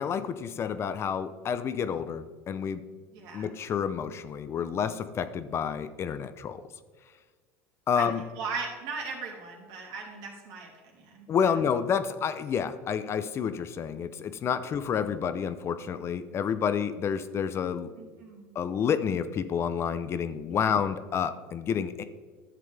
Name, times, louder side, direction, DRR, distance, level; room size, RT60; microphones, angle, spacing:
voice 1, 0.0-2.8 3.3-6.6 7.9-8.2 11.3-17.9 18.5-22.0, left 7 dB, 40° left, 12 dB, 0.5 m, -29 dB
voice 2, 3.1-3.5 7.9-8.1 8.4-11.3 14.6-14.7 18.0-18.6 20.5-20.7, right 5 dB, 65° right, 0 dB, 2.6 m, -38 dB
11.0 x 7.6 x 3.4 m, 1.5 s
supercardioid pair, 100°, 7 cm